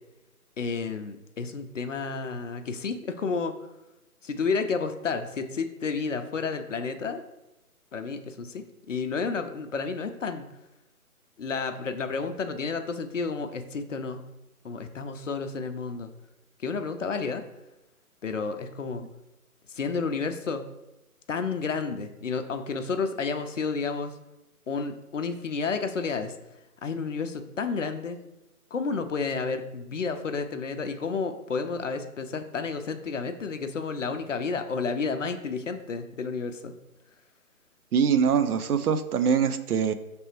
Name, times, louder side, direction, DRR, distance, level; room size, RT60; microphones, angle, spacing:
voice 1, 0.6-3.5 4.2-7.2 7.9-10.5 11.4-14.2 14.6-16.1 16.6-17.4 18.2-19.0 19.8-20.6 21.3-24.1 24.7-26.3 26.8-28.2 28.7-36.7, left 4 dB, 55° left, 7 dB, 0.5 m, -31 dB
voice 2, 37.9-39.9, right 7 dB, 75° right, 11 dB, 0.5 m, -23 dB
5.3 x 3.3 x 3.0 m, 0.96 s
figure-of-eight pair, 155°, 45 cm